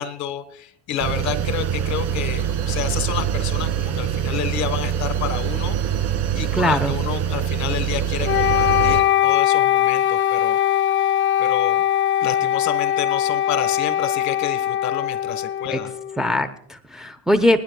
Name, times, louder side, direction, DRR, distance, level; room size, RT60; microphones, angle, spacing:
voice 1, 0.0-5.8 6.3-10.6 11.4-11.8 12.2-15.9, left 9 dB, 55° left, 12 dB, 1.4 m, -29 dB
sound 1, 1.0-9.0, right 9 dB, 50° right, 2.2 m, -24 dB
voice 2, 6.5-6.9 15.7-15.8 16.2-17.6, left 1 dB, ahead, 5 dB, 0.8 m, -21 dB
Wind instrument woodwind instrument, 8.2-16.3, left 12 dB, 35° left, 0.6 m, -21 dB
28.5 x 9.9 x 2.3 m, 0.67 s
supercardioid pair, 90°, 33 cm